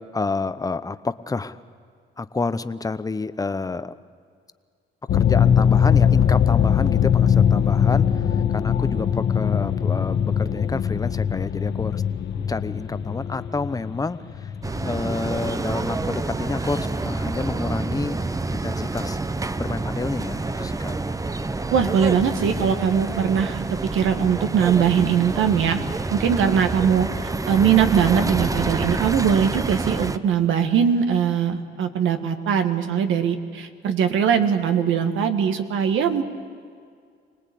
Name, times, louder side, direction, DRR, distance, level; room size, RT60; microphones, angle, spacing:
voice 1, 0.0-1.6 2.2-4.0 5.1-12.0 12.5-14.5 14.8-18.2 18.5-19.2 19.6-20.9 22.1-22.2 22.6-22.7, left 3 dB, 20° left, 13 dB, 0.8 m, -29 dB
sound 1, 5.1-16.1, left 8 dB, 60° left, 1.4 m, -21 dB
sound 2, 14.6-30.2, right 3 dB, 15° right, 0.7 m, -28 dB
voice 2, 21.7-23.6 23.9-25.8 26.1-27.1 27.5-36.2, right 7 dB, 80° right, 7 dB, 1.6 m, -21 dB
25.0 x 19.0 x 8.5 m, 2.1 s
cardioid pair, 90°, 20 cm